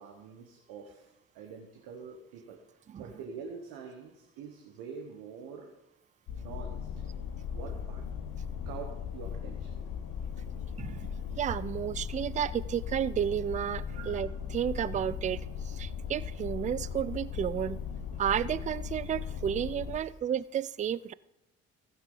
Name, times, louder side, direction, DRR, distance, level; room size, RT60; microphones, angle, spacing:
voice 1, 0.0-2.6 3.0-5.7 6.3-6.9 7.5-8.0 8.6-9.8 13.9-14.1, right 6 dB, 70° right, 3 dB, 1.2 m, -45 dB
sound 1, 6.3-20.0, left 7 dB, 60° left, 1.1 m, -38 dB
voice 2, 10.8-17.8 18.2-21.1, right 9 dB, 20° right, 20 dB, 0.3 m, -32 dB
15.0 x 9.4 x 3.9 m, 0.90 s
figure-of-eight pair, 45°, 38 cm